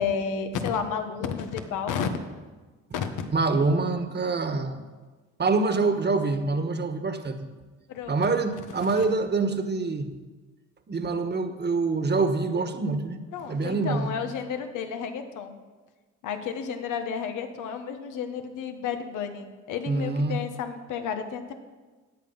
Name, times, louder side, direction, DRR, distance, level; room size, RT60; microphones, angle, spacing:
voice 1, 0.0-2.1 2.9-3.3 7.9-8.3 8.8-9.0 13.3-15.6 16.2-21.5, left 6 dB, 90° left, 7 dB, 1.4 m, -32 dB
voice 2, 3.3-4.8 5.4-7.5 8.1-10.1 10.9-13.2 13.5-14.1 19.9-20.4, right 3 dB, 35° right, 8 dB, 1.4 m, -25 dB
15.5 x 9.0 x 5.6 m, 1.3 s
cardioid pair, 90°, 30 cm